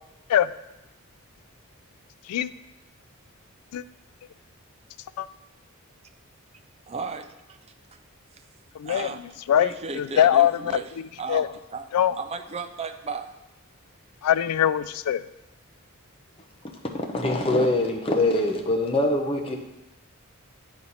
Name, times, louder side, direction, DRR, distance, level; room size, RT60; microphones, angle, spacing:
voice 1, 6.9-7.6 8.8-9.2 9.6-10.9 11.2-11.9 12.1-13.3, right 4 dB, 30° right, 8 dB, 0.4 m, -35 dB
voice 2, 8.8-9.1 9.5-9.7 9.9-10.8 11.3-11.5 11.9-12.1 14.2-15.3, left 10 dB, 90° left, 17 dB, 0.3 m, -21 dB
voice 3, 16.9-19.6, left 1 dB, 25° left, 2 dB, 0.8 m, -23 dB
9.2 x 4.3 x 4.1 m, 0.95 s
head